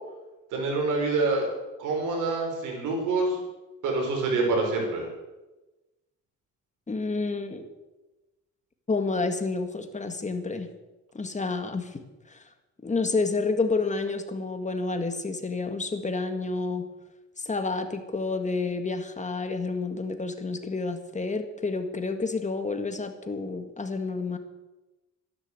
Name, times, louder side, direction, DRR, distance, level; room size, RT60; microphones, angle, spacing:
voice 1, 0.5-1.5 1.8-3.4 3.8-5.1, right 3 dB, 90° right, 0 dB, 5.4 m, -26 dB
voice 2, 6.9-7.6 8.9-10.7 11.1-12.0 12.3-12.4 12.8-16.9 17.4-24.4, left 3 dB, 25° left, 7 dB, 2.0 m, -29 dB
12.5 x 11.0 x 8.1 m, 1.1 s
cardioid pair, 90°, 30 cm